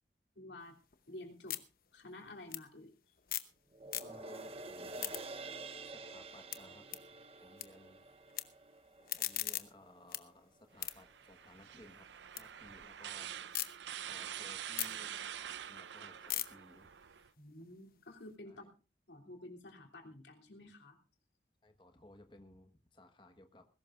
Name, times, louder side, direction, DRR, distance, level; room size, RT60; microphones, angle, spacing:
voice 1, 0.3-0.7 1.1-1.6 1.9-2.9 17.4-18.7 19.1-21.0, left 1 dB, 85° left, 2 dB, 3.1 m, -51 dB
sound 1, 0.6-3.6 3.8-4.5 4.8-7.7 7.9-8.4 8.8-12.4 12.8-13.7 14.1-18.3, left 14 dB, 55° left, 0.9 m, -43 dB
sound 2, 3.7-10.3 10.7-10.8, right 3 dB, 35° right, 0.9 m, -49 dB
voice 2, 4.0-5.2 5.9-8.0 9.1-12.1 12.3-13.3 14.1-16.9 18.5-18.7 21.6-23.6, left 1 dB, 25° left, 6 dB, 1.4 m, -59 dB
sound 3, 10.8-17.3, right 10 dB, 85° right, 0.6 m, -46 dB
20.0 x 16.5 x 2.5 m, 0.33 s
head